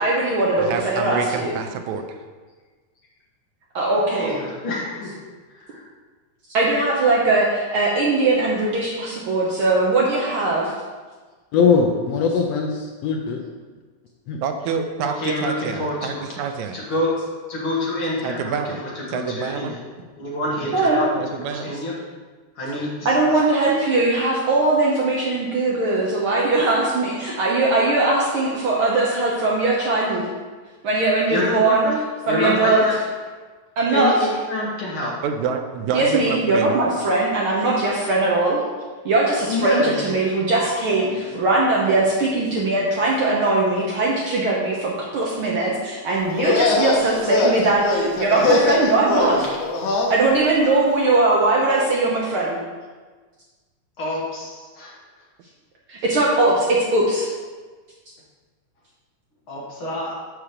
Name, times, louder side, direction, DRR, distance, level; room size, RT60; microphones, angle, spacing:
voice 1, 0.0-1.5 3.7-4.4 6.5-10.7 20.7-21.0 23.0-30.3 30.8-31.8 32.3-32.8 33.8-34.1 35.9-38.6 39.0-49.5 50.1-52.6 55.9-57.3, right 2 dB, 65° right, -4 dB, 1.4 m, -20 dB
voice 2, 0.6-2.2 14.4-15.1 15.4-16.8 18.2-18.8 19.1-19.7 21.2-21.7 35.2-36.8, right 6 dB, 90° right, 6 dB, 2.0 m, -27 dB
voice 3, 4.1-5.2 5.5-5.9 15.0-16.2 16.7-19.8 20.2-21.1 21.4-21.9 22.6-23.3 31.3-32.0 32.3-33.0 33.9-35.1 39.5-40.1 40.6-40.7 41.2-41.3 54.0-55.0 59.5-60.2, left 1 dB, 50° left, -4 dB, 1.9 m, -27 dB
voice 4, 11.5-13.4 14.3-14.4, left 5 dB, 75° left, 1 dB, 1.6 m, -20 dB
sound 1, 46.3-50.1, left 2 dB, 90° left, 2.3 m, -21 dB
5.9 x 4.8 x 6.5 m, 1.4 s
omnidirectional pair, 3.3 m